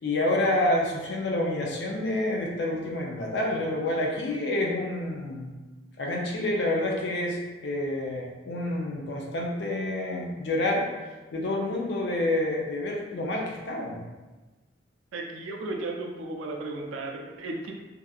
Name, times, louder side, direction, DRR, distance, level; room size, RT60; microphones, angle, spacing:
voice 1, 0.0-5.6 6.0-10.9 11.3-14.0, left 1 dB, 60° left, -1 dB, 0.4 m, -28 dB
voice 2, 15.1-17.7, right 2 dB, 85° right, 1 dB, 0.4 m, -35 dB
2.7 x 2.3 x 2.3 m, 1.2 s
head